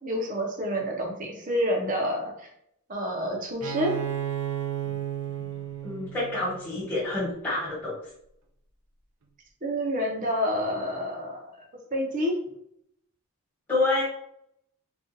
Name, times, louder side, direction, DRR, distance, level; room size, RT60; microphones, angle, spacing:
voice 1, 0.0-2.3 2.9-3.9 9.6-11.4 11.9-12.3, equal, 35° right, 0 dB, 0.7 m, -28 dB
Bowed string instrument, 3.6-7.2, right 10 dB, 75° right, 0.5 m, -33 dB
voice 2, 5.8-7.9 13.7-14.0, left 2 dB, 10° left, -8 dB, 1.3 m, -28 dB
3.8 x 2.4 x 2.6 m, 0.73 s
head